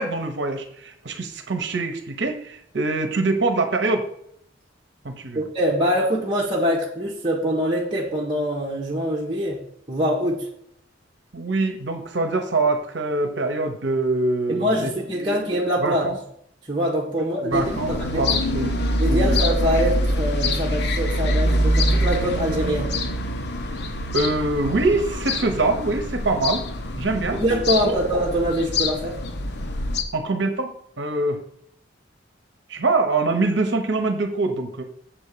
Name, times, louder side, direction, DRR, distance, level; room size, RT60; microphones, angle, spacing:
voice 1, 0.0-4.1 5.0-5.4 11.3-15.4 15.8-16.2 17.4-18.8 19.1-19.4 24.1-26.6 27.0-27.4 27.8-28.0 30.1-31.4 32.7-34.8, right 3 dB, 65° right, 6 dB, 0.9 m, -24 dB
voice 2, 5.3-9.6 9.9-10.5 14.5-16.1 16.7-17.6 17.9-18.2 19.0-23.0 27.3-29.2, equal, 25° right, -4 dB, 1.3 m, -24 dB
sound 1, 17.5-30.0, left 1 dB, 65° left, 1.0 m, -24 dB
7.6 x 4.3 x 6.7 m, 0.68 s
head